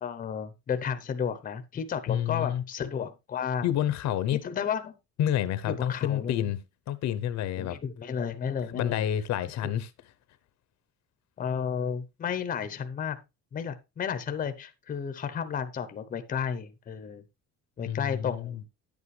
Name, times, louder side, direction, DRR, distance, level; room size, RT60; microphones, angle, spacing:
voice 1, 0.0-3.6 4.3-4.9 5.7-6.5 7.6-9.0 9.6-9.7 11.4-13.2 13.5-17.2 17.8-18.7, left 7 dB, 30° left, 0.8 m, -32 dB
voice 2, 2.1-2.6 3.6-4.4 5.2-7.8 8.7-9.9 17.8-18.6, left 11 dB, 65° left, 0.8 m, -29 dB
10.5 x 8.5 x 3.2 m
cardioid pair, 175°, 30 cm